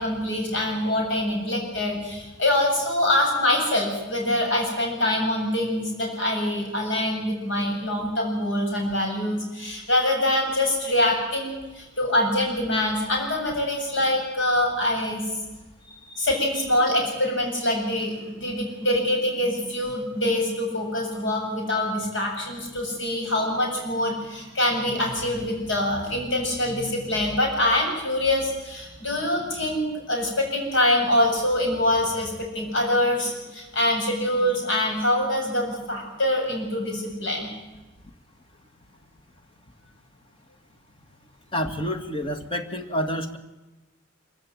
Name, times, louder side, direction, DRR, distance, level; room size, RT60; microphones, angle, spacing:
voice 1, 0.0-15.3 16.1-37.5, left 1 dB, 70° left, 1 dB, 7.6 m, -24 dB
voice 2, 41.5-43.4, equal, 25° left, 7 dB, 2.1 m, -28 dB
25.5 x 16.0 x 9.2 m, 1.1 s
head